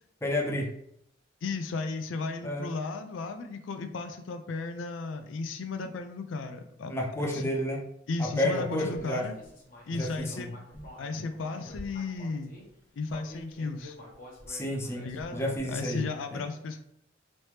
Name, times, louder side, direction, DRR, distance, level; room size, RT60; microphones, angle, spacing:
voice 1, 0.2-0.7 2.4-2.7 6.9-7.8 8.2-9.3 10.0-10.8 14.5-16.0 16.3-16.4, left 1 dB, 15° left, 0 dB, 0.5 m, -31 dB
voice 2, 1.4-7.6 8.1-9.3 9.9-10.5 11.0-12.5 12.9-14.0 15.0-15.4 15.7-16.8, left 3 dB, 85° left, 7 dB, 0.4 m, -35 dB
Human voice, 8.7-12.6 13.1-15.8, left 1 dB, 45° left, 0.8 m, -48 dB
3.2 x 2.8 x 3.2 m, 0.72 s
head